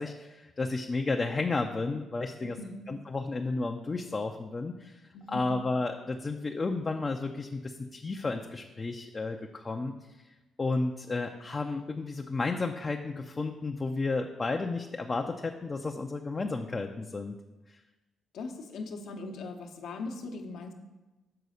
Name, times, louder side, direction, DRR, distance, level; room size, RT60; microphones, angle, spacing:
voice 1, 0.0-2.6 2.9-5.0 5.3-10.0 10.6-17.3 17.7-17.8, left 3 dB, 30° left, 3 dB, 0.5 m, -32 dB
voice 2, 2.4-2.9 5.1-5.5 18.3-20.7, left 3 dB, 75° left, 4 dB, 0.9 m, -40 dB
6.8 x 4.0 x 6.4 m, 1.1 s
cardioid pair, 90°, 0 cm